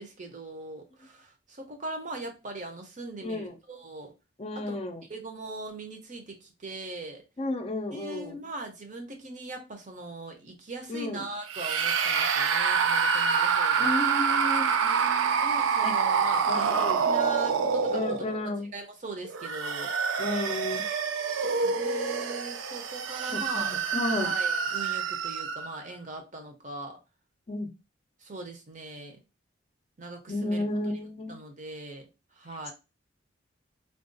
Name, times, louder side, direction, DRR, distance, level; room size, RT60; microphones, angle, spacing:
voice 1, 0.0-4.1 4.6-4.8 5.1-7.2 7.9-13.9 15.4-18.0 18.7-19.9 21.6-23.8 24.1-27.0 28.2-29.2 30.0-30.6 31.3-32.1 32.4-32.7, right 2 dB, 40° right, 0.6 m, -40 dB
voice 2, 3.2-3.5 4.4-5.0 7.4-8.4 10.9-11.3 13.8-15.4 15.8-15.9 16.5-17.1 17.9-18.7 20.2-20.8 23.3-24.3 27.5-27.7 30.3-31.4, left 2 dB, 30° left, 0.4 m, -33 dB
sound 1, 11.5-18.5 19.2-25.8, right 6 dB, 90° right, 0.4 m, -27 dB
3.4 x 2.3 x 2.6 m
head